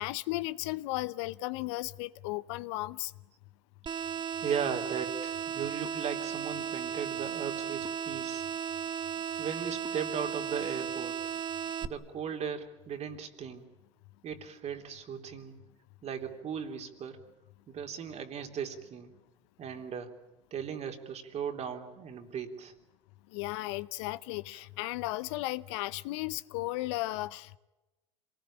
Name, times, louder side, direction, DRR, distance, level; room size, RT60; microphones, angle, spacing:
voice 1, 0.0-3.1 23.3-27.6, left 18 dB, 75° left, 0.8 m, -35 dB
sound 1, 3.9-11.9, right 8 dB, 30° right, 1.2 m, -35 dB
voice 2, 4.4-8.5 9.4-11.2 11.8-13.7 14.2-15.5 16.0-17.2 17.7-19.1 19.6-20.1 20.5-22.7 24.5-24.6, right 7 dB, 50° right, 3.3 m, -37 dB
26.5 x 19.5 x 8.7 m
hypercardioid pair, 75°, 15 cm